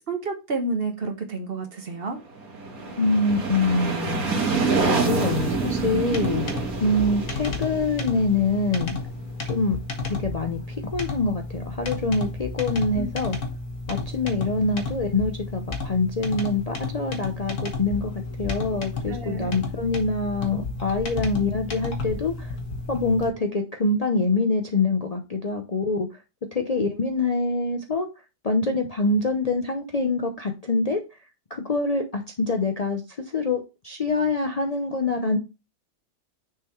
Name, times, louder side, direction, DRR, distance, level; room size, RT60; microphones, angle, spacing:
voice 1, 0.1-2.2 12.9-13.1 19.1-19.5, right 3 dB, 40° right, 5 dB, 1.1 m, -30 dB
sound 1, 2.4-9.1, right 4 dB, 60° right, 2.0 m, -27 dB
voice 2, 3.0-6.4 6.8-9.0 9.4-9.8 10.0-10.6 10.9-13.4 13.9-22.5 22.9-26.1 26.5-28.1 28.4-31.0 31.5-35.4, left 3 dB, 90° left, 3 dB, 0.3 m, -25 dB
sound 2, 5.4-23.3, left 3 dB, 50° left, 1.4 m, -32 dB
6.5 x 3.7 x 4.4 m, 0.27 s
omnidirectional pair, 1.8 m